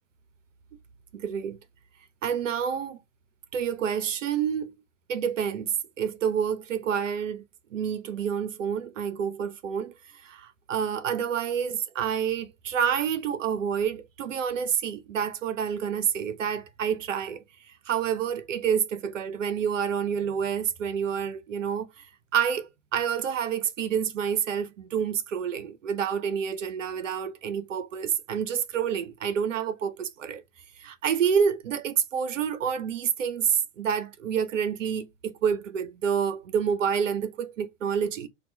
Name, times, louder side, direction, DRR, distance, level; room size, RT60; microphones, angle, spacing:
voice 1, 1.1-1.6 2.2-3.0 3.5-4.7 5.1-7.4 7.7-17.4 17.9-22.1 22.3-30.4 30.8-38.3, right 7 dB, 80° right, 0.5 m, -28 dB
2.9 x 2.2 x 3.1 m
figure-of-eight pair, 90°, 37 cm